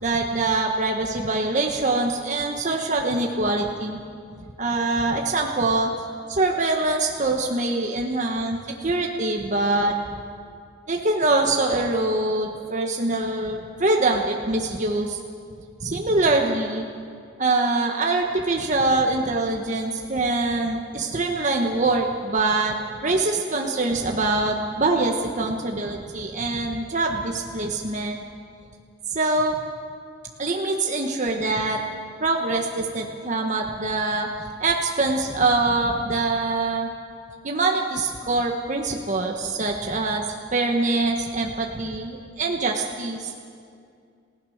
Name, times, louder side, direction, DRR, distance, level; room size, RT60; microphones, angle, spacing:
voice 1, 0.0-4.0 4.6-5.9 6.3-9.9 10.9-15.2 15.8-16.9 17.4-22.8 23.0-28.2 29.1-29.6 30.4-31.8 32.2-36.9 37.4-40.2 40.5-43.3, right 2 dB, 40° right, 1 dB, 1.4 m, -24 dB
29.0 x 16.5 x 6.6 m, 2.3 s
head